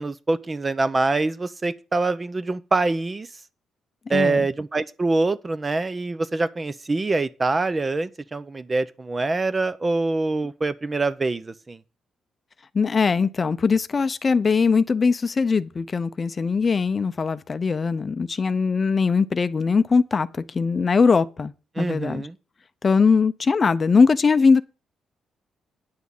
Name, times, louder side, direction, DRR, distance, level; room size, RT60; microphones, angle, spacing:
voice 1, 0.0-3.3 4.1-11.8 21.8-22.3, right 3 dB, 25° right, 0.7 m, -24 dB
voice 2, 4.1-4.5 12.7-22.3 22.8-24.6, left 5 dB, 30° left, 0.6 m, -21 dB
9.6 x 6.2 x 7.2 m
cardioid pair, 115°, 0 cm